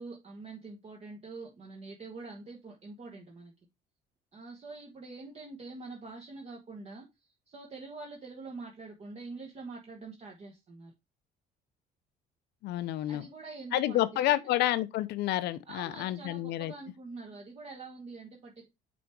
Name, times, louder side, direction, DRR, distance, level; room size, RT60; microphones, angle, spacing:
voice 1, 0.0-3.5 4.3-10.9 13.1-14.5 15.7-18.7, right 3 dB, 40° right, 1.3 m, -45 dB
voice 2, 12.6-13.3 13.7-16.7, left 14 dB, 80° left, 0.6 m, -29 dB
6.2 x 3.4 x 4.6 m
cardioid pair, 110°, 17 cm